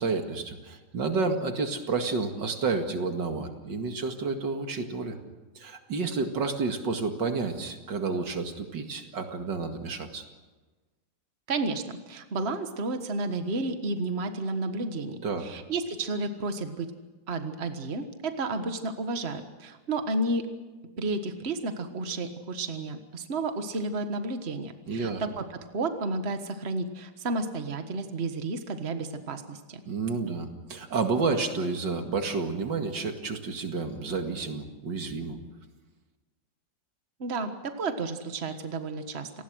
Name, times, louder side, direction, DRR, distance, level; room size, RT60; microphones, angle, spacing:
voice 1, 0.0-5.2 5.6-10.2 15.2-15.5 24.9-25.2 29.9-35.4, right 4 dB, 80° right, 5 dB, 2.7 m, -30 dB
voice 2, 11.5-16.9 17.3-20.4 21.0-29.8 37.2-39.3, right 2 dB, 35° right, 7 dB, 1.7 m, -32 dB
28.0 x 19.5 x 6.3 m, 1.2 s
omnidirectional pair, 1.9 m